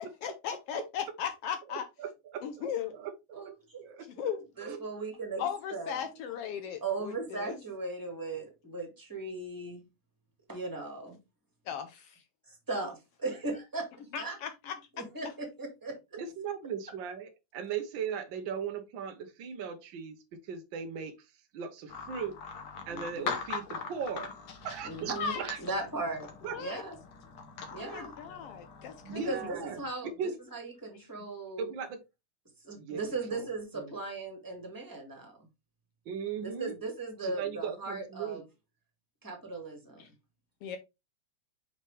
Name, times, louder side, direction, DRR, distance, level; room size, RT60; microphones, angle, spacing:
voice 1, 0.0-1.9 2.4-2.9 4.2-4.4 5.4-7.6 11.7-12.2 14.1-15.0 25.1-25.4 26.5-26.8 27.8-29.3 40.0-40.1 40.6-40.8, left 8 dB, 80° left, 1.3 m, -37 dB
voice 2, 2.0-2.4 2.9-4.1 4.6-4.8 16.2-21.1 21.5-22.3 22.9-24.3 24.6-25.6 26.4-26.6 29.0-30.3 31.6-32.0 32.8-33.0 33.3-33.5 33.8-33.9 36.1-36.8 37.2-38.4, right 7 dB, 75° right, 1.1 m, -38 dB
voice 3, 3.3-3.8 4.2-6.0 6.8-9.8 10.5-11.2 12.5-13.9 14.2-14.4 15.0-16.2 22.9-23.3 24.8-26.3 26.6-26.9 27.7-28.1 29.1-31.7 32.6-35.4 36.6-38.4 39.2-40.0, right 3 dB, 10° right, 1.4 m, -38 dB
sound 1, 21.9-29.8, left 6 dB, 60° left, 1.7 m, -42 dB
6.0 x 5.4 x 3.2 m
omnidirectional pair, 3.4 m